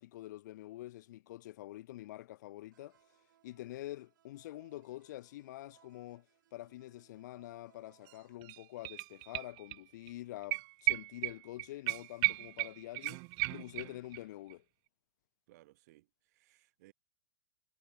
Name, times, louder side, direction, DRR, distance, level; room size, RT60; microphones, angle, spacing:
voice 1, 0.0-3.0 3.4-6.3 6.5-13.2 13.5-14.6, left 15 dB, 65° left, 1.3 m, -46 dB
sound 1, 2.7-8.4, right 12 dB, 85° right, 7.9 m, -69 dB
sound 2, 8.1-8.2 8.4-9.8 10.1-10.2 10.5-14.2 14.5-14.6, right 31 dB, 40° right, 0.6 m, -35 dB
voice 2, 15.5-16.9, right 18 dB, 60° right, 6.9 m, -62 dB
supercardioid pair, 160°, 10 cm